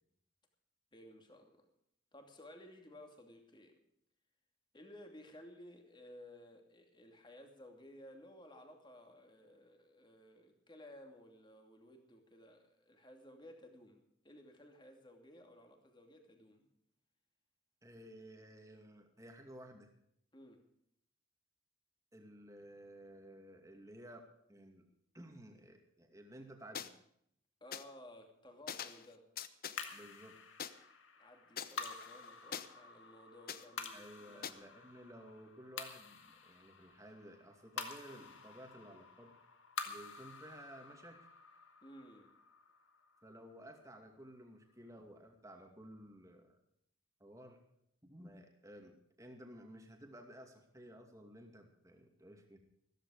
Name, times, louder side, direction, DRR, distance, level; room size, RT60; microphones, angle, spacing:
voice 1, 0.9-1.7 2.1-3.8 4.7-16.7 20.3-20.6 27.6-29.3 31.2-34.6 41.8-42.3, left 1 dB, 20° left, 4 dB, 2.7 m, -57 dB
voice 2, 17.8-19.9 22.1-24.8 25.1-26.9 29.9-30.4 33.9-39.3 39.9-41.3 43.2-46.6 47.2-47.6 48.0-52.6, right 1 dB, 15° right, 3 dB, 2.5 m, -55 dB
sound 1, 26.7-26.9 27.7-27.8 28.7-29.1 29.4-29.8 30.6-30.7 31.6-32.7 33.5-33.6 34.4-34.5, left 8 dB, 45° left, 0.8 m, -43 dB
sound 2, 29.8-44.3, left 5 dB, 70° left, 2.0 m, -49 dB
15.0 x 14.5 x 5.0 m, 0.71 s
head